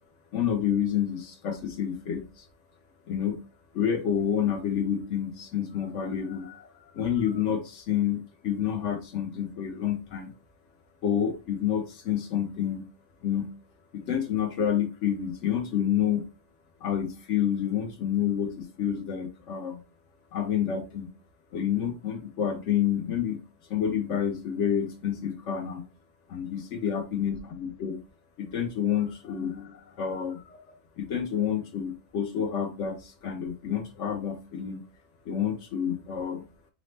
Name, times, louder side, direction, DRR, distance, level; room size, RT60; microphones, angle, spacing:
voice 1, 0.3-2.4 3.1-3.4 3.7-10.3 11.0-12.9 13.2-13.5 13.9-16.3 16.8-19.8 20.3-21.1 21.5-23.4 23.7-25.8 26.3-28.0 28.4-34.8 35.3-36.5, left 9 dB, 65° left, 0.8 m, -29 dB
4.9 x 2.0 x 3.2 m
omnidirectional pair, 1.5 m